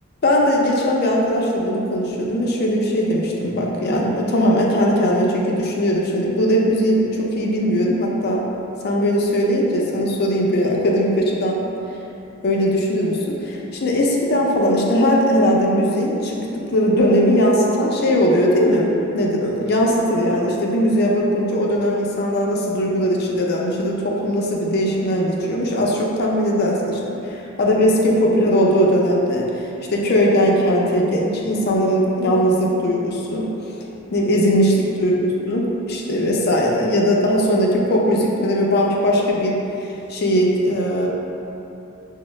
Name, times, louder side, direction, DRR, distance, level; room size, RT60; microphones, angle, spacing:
voice 1, 0.2-8.4 8.8-11.6 12.4-27.2 27.6-33.5 34.1-41.1, equal, 50° left, -2 dB, 0.5 m, -19 dB
6.1 x 2.1 x 3.0 m, 2.9 s
head